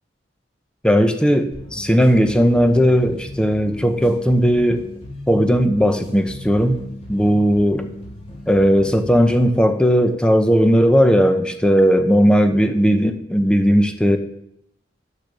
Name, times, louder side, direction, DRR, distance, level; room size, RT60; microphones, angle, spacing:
voice 1, 0.8-4.8 5.3-6.8 7.1-7.9 8.5-14.2, equal, 5° left, 7 dB, 0.8 m, -16 dB
sound 1, 1.5-9.5, left 1 dB, 35° left, 2.9 m, -36 dB
10.0 x 6.7 x 6.8 m, 0.77 s
head